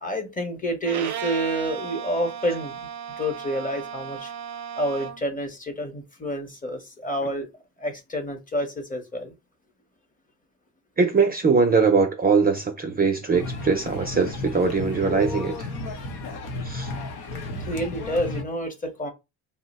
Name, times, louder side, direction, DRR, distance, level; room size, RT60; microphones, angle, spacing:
voice 1, 0.0-2.9 3.2-4.3 4.8-7.5 7.8-9.3 17.5-19.1, equal, 20° left, 0.8 m, -29 dB
Bowed string instrument, 0.8-5.3, right 8 dB, 80° right, 0.6 m, -35 dB
voice 2, 11.0-15.7 16.6-16.9, right 5 dB, 25° right, 0.4 m, -21 dB
sound 1, 13.3-18.4, left 2 dB, 75° left, 0.8 m, -33 dB
2.8 x 2.1 x 4.0 m
cardioid pair, 115°, 39 cm